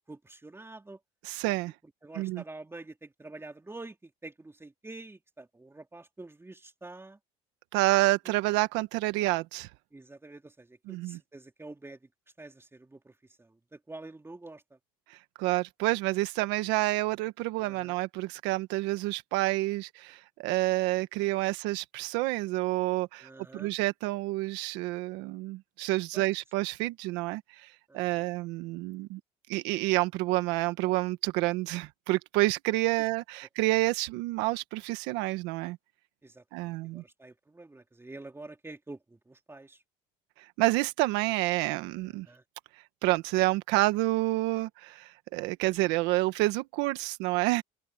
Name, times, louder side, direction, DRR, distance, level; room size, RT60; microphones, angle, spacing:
voice 1, 0.1-1.0 2.0-7.2 9.9-12.0 12.4-14.8 17.6-18.0 23.2-23.7 26.1-26.2 27.9-28.3 36.2-39.8 42.2-42.4, right 2 dB, 15° right, 3.3 m, -47 dB
voice 2, 1.2-1.7 2.1-2.4 7.7-9.7 10.9-11.2 15.1-29.2 29.5-35.8 36.5-37.0 40.6-42.3 43.0-47.6, right 19 dB, 80° right, 1.5 m, -29 dB
open air
supercardioid pair, 85°, 18 cm